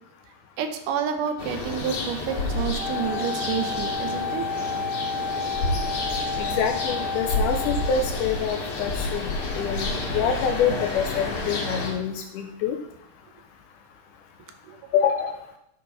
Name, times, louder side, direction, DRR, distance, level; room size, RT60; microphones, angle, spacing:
voice 1, 0.6-4.5 7.3-7.4 14.7-14.8, right 7 dB, 75° right, 7 dB, 2.3 m, -29 dB
sound 1, 1.4-11.9, left 2 dB, 65° left, 2.9 m, -30 dB
Wind instrument woodwind instrument, 2.8-8.2, left 4 dB, 40° right, 1.3 m, -31 dB
voice 2, 6.4-9.3 9.6-12.8 14.9-15.4, left 7 dB, 80° left, 5 dB, 2.0 m, -26 dB
9.9 x 4.5 x 5.4 m, 0.77 s
omnidirectional pair, 3.9 m